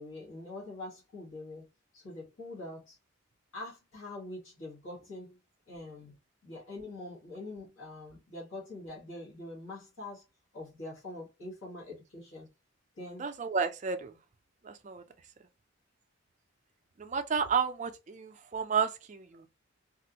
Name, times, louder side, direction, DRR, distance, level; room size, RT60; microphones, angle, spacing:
voice 1, 0.0-1.7 1.9-3.0 3.5-5.4 5.7-6.1 6.4-10.2 10.5-12.5 13.0-13.2, left 2 dB, 70° left, 1.5 m, -44 dB
voice 2, 13.2-14.2 14.6-15.0 17.0-19.5, right 6 dB, 35° right, 0.4 m, -32 dB
3.3 x 2.4 x 2.8 m
head